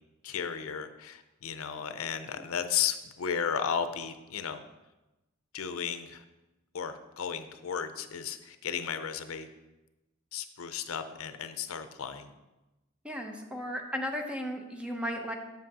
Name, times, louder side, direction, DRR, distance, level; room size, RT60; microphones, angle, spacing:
voice 1, 0.2-4.6 5.5-6.2 6.7-9.5 10.3-12.3, left 7 dB, 80° left, 10 dB, 0.5 m, -34 dB
voice 2, 13.0-15.3, equal, 5° right, 3 dB, 0.7 m, -35 dB
7.5 x 7.5 x 2.8 m, 1.0 s
head